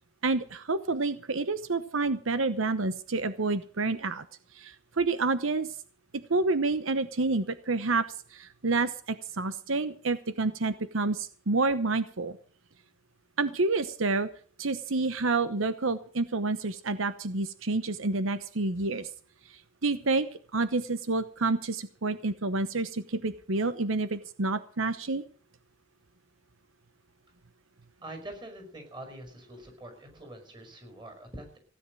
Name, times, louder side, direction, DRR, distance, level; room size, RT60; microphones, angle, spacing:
voice 1, 0.2-4.2 4.5-5.7 6.3-12.4 13.4-14.3 14.6-19.1 19.5-20.3 20.5-25.2, right 3 dB, 80° right, 12 dB, 1.0 m, -29 dB
voice 2, 28.0-31.6, right 1 dB, 25° right, 6 dB, 5.3 m, -44 dB
16.5 x 10.0 x 6.3 m, 0.43 s
head